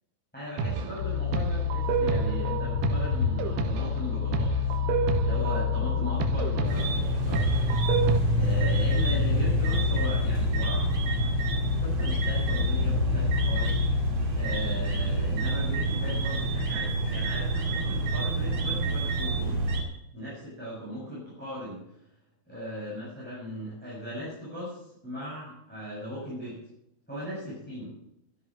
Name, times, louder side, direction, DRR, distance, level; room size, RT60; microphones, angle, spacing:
voice 1, 0.3-4.5 5.2-7.7 8.3-10.9 11.8-13.8 14.3-19.6 20.1-21.8 22.5-26.6 27.1-27.9, equal, ahead, -8 dB, 6.4 m, -38 dB
sound 1, 0.6-8.2, right 6 dB, 75° right, 2.1 m, -30 dB
sound 2, 1.0-17.7, left 6 dB, 45° left, 2.5 m, -29 dB
sound 3, 6.6-19.8, right 3 dB, 40° right, 2.7 m, -29 dB
12.0 x 10.5 x 7.7 m, 0.77 s
omnidirectional pair, 5.2 m